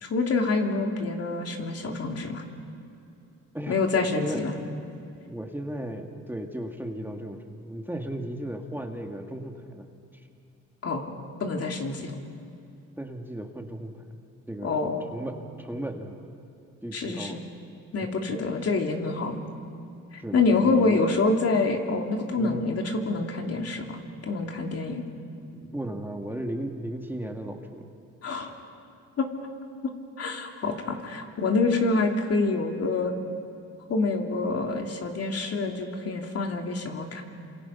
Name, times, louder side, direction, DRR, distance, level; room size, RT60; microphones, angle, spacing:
voice 1, 0.0-2.4 3.7-4.5 10.8-11.1 11.4-12.1 14.6-15.1 16.9-17.4 17.9-19.4 20.1-25.1 28.2-28.5 29.2-29.3 29.8-29.9 30.2-33.1 33.9-37.2, left 3 dB, 55° left, 2 dB, 3.1 m, -26 dB
voice 2, 3.5-4.6 5.3-9.9 10.1-10.2 13.0-14.8 15.1-16.3 16.8-17.4 20.2-21.0 22.3-22.6 25.5-27.9, right 1 dB, 5° right, 2 dB, 2.2 m, -36 dB
29.0 x 26.5 x 5.8 m, 2.6 s
cardioid pair, 90°, 30 cm